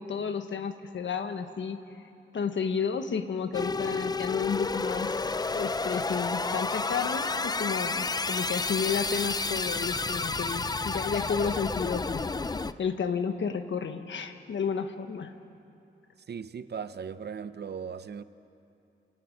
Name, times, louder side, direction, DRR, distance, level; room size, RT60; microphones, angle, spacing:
voice 1, 0.0-1.8 2.3-5.1 5.5-12.3 12.8-15.3, left 6 dB, 75° left, 8 dB, 1.3 m, -32 dB
sound 1, 3.5-12.7, left 3 dB, 20° left, 0.4 m, -31 dB
sound 2, 9.4-12.0, right 3 dB, 45° right, 2.0 m, -54 dB
voice 2, 16.3-18.2, right 6 dB, 60° right, 12 dB, 0.7 m, -38 dB
28.0 x 14.0 x 9.7 m, 2.7 s
wide cardioid pair, 150°, 19 cm